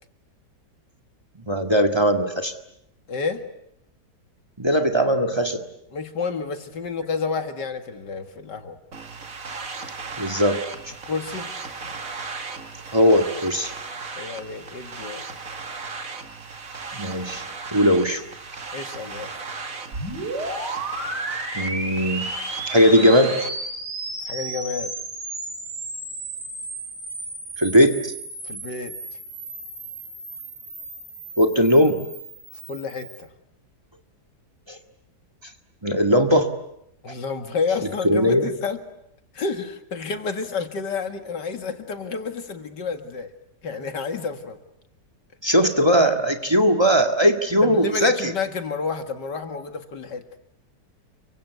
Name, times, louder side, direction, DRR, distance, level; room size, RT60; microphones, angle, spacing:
voice 1, 1.4-2.5 4.6-5.6 10.2-10.6 12.9-13.7 16.9-17.4 17.7-18.2 21.5-22.3 22.7-23.4 27.6-28.0 31.4-32.1 34.7-34.8 35.8-36.5 38.0-38.5 45.4-48.2, equal, 15° right, 5 dB, 1.9 m, -19 dB
voice 2, 3.1-3.5 5.9-8.8 11.1-11.5 14.1-15.3 18.7-19.3 24.3-24.9 28.4-29.0 32.7-33.3 37.0-38.8 39.3-43.3 43.6-44.6 47.6-50.2, left 4 dB, 80° left, 8 dB, 2.6 m, -30 dB
sound 1, 8.9-23.5, right 4 dB, 50° right, 2.4 m, -36 dB
sound 2, 19.9-33.2, right 2 dB, 75° right, 5.6 m, -34 dB
29.5 x 24.5 x 8.2 m, 0.78 s
omnidirectional pair, 1.8 m